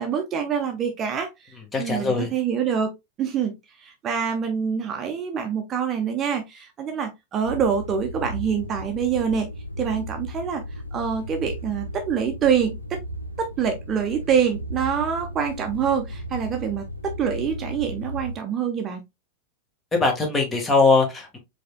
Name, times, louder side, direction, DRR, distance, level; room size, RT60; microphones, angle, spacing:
voice 1, 0.0-2.9 3.2-3.5 3.8-9.5 9.8-10.6 10.9-13.0 13.4-19.0, right 7 dB, 30° right, 0.8 m, -25 dB
voice 2, 1.7-2.3 19.9-21.4, left 3 dB, 20° left, 1.5 m, -21 dB
sound 1, 7.4-18.4, equal, 85° left, 0.5 m, -35 dB
4.9 x 3.4 x 2.2 m
figure-of-eight pair, 90°, 0 cm